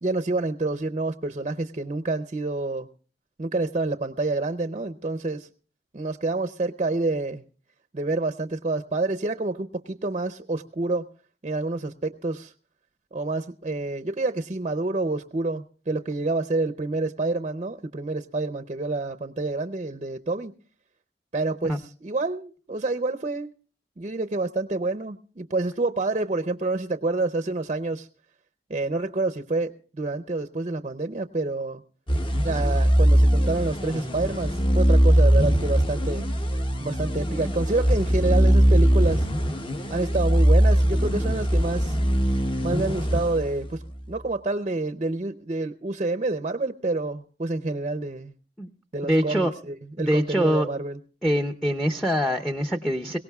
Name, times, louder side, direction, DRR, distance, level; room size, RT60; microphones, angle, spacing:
voice 1, 0.0-2.9 3.4-5.5 5.9-7.4 7.9-11.1 11.4-12.5 13.1-20.5 21.3-23.5 24.0-28.1 28.7-31.8 32.4-36.3 36.8-39.3 39.9-42.0 42.6-43.8 44.1-48.3 48.9-51.0, right 2 dB, 35° right, 9 dB, 0.6 m, -28 dB
sound 1, 32.1-43.9, equal, 30° left, 0.9 m, -21 dB
voice 2, 49.0-49.5 50.0-50.7 51.2-53.2, equal, ahead, 6 dB, 0.6 m, -24 dB
22.5 x 18.0 x 2.3 m, 0.39 s
head